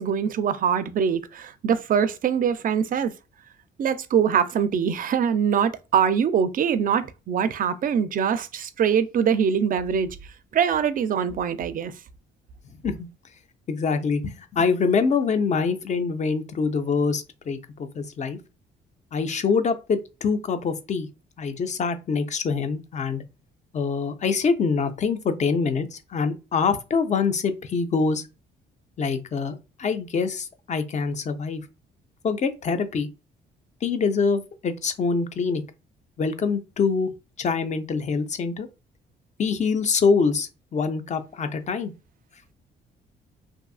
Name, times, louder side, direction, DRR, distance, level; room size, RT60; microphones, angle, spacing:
voice 1, 0.0-3.1 3.8-10.1 10.5-11.9, right 7 dB, 45° right, 0.4 m, -23 dB
voice 2, 13.7-18.4 19.1-21.1 21.4-23.2 23.7-28.2 29.0-31.6 32.2-33.1 33.8-35.6 36.2-37.1 37.4-38.7 39.4-41.9, left 5 dB, 35° left, 0.4 m, -25 dB
2.6 x 2.4 x 2.3 m
cardioid pair, 90°, 20 cm